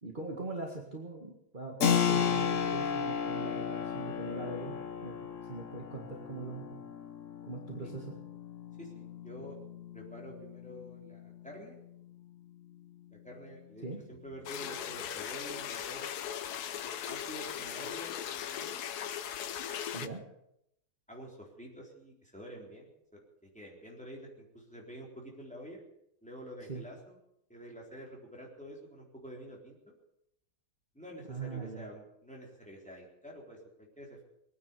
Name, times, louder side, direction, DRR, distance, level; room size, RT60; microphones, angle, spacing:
voice 1, 0.0-5.2 5.5-6.7 7.5-8.2 13.8-14.0 19.9-20.2 26.7-26.8 31.3-31.9, right 3 dB, 30° right, 0 dB, 2.0 m, -41 dB
Keyboard (musical), 1.8-12.2, left 7 dB, 55° left, 1.3 m, -35 dB
voice 2, 8.8-9.6 9.9-11.8 13.1-16.2 16.8-18.7 21.1-25.8 26.2-27.2 27.5-29.9 30.9-34.2, equal, 5° left, -2 dB, 3.8 m, -48 dB
sound 1, 14.5-20.1, left 9 dB, 75° left, 1.3 m, -38 dB
21.5 x 9.7 x 6.8 m, 0.78 s
omnidirectional pair, 1.8 m